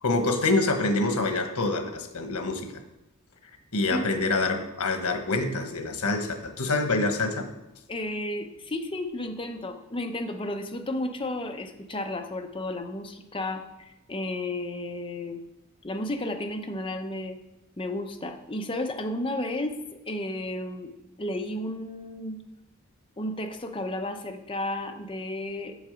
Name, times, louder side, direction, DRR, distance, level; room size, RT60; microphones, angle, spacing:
voice 1, 0.0-2.8 3.7-7.5, left 2 dB, 85° left, 6 dB, 1.2 m, -26 dB
voice 2, 7.9-15.4 15.8-17.4 17.8-20.9 21.2-22.4 23.2-25.8, left 1 dB, 25° left, 4 dB, 0.8 m, -33 dB
7.1 x 7.1 x 5.0 m, 0.92 s
head